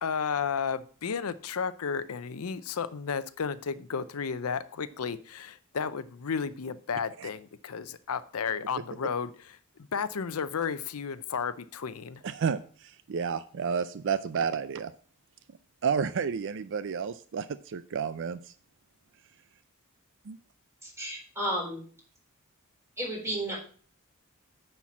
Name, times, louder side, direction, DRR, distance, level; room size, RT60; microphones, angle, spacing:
voice 1, 0.0-9.6 9.9-12.2, left 6 dB, 80° left, 14 dB, 0.6 m, -33 dB
voice 2, 12.2-14.9 15.8-18.4 20.3-20.4, right 6 dB, 60° right, 13 dB, 0.4 m, -31 dB
voice 3, 20.8-21.8 23.0-23.6, right 1 dB, 15° right, -2 dB, 4.0 m, -32 dB
9.9 x 4.5 x 7.2 m, 0.43 s
head